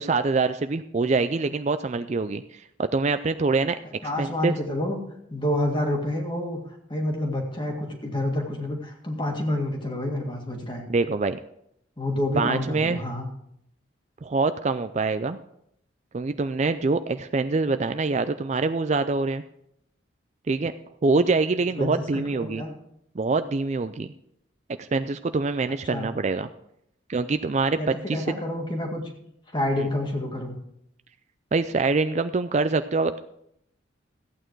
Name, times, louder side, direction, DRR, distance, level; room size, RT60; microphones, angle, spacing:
voice 1, 0.0-3.8 4.2-4.5 10.9-11.4 12.4-13.0 14.2-15.4 16.1-19.4 20.5-20.7 21.0-22.6 23.2-24.1 24.8-26.5 27.1-27.8 28.1-28.3 29.8-29.9 31.5-33.2, right 3 dB, 35° right, 11 dB, 0.4 m, -25 dB
voice 2, 4.0-5.0 5.3-6.6 6.9-10.8 12.0-13.3 21.8-22.7 25.9-26.1 27.7-29.0 29.5-30.6, left 1 dB, 25° left, 2 dB, 1.9 m, -28 dB
14.5 x 8.9 x 4.6 m, 0.75 s
head